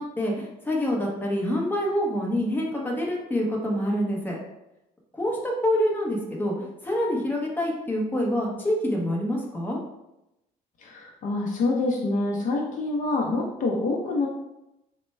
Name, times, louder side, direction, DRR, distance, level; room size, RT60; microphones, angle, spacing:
voice 1, 0.0-4.4 5.1-9.8, equal, 10° left, -2 dB, 0.8 m, -26 dB
voice 2, 10.8-14.3, left 2 dB, 50° left, 0 dB, 0.6 m, -26 dB
4.1 x 2.2 x 3.2 m, 0.89 s
cardioid pair, 110°, 17 cm